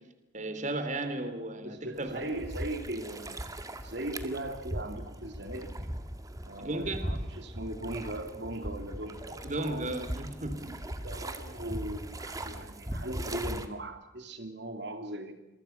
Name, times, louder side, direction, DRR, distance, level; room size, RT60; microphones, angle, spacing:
voice 1, 0.3-2.3 6.6-7.2 9.4-10.6, right 2 dB, 40° right, 9 dB, 3.1 m, -34 dB
voice 2, 1.6-3.4 3.8-5.7 6.4-9.9 10.7-15.3, right 1 dB, 60° right, 7 dB, 3.0 m, -39 dB
sound 1, 2.0-13.7, right 1 dB, 20° right, 2.0 m, -39 dB
28.0 x 23.5 x 5.8 m, 0.96 s
head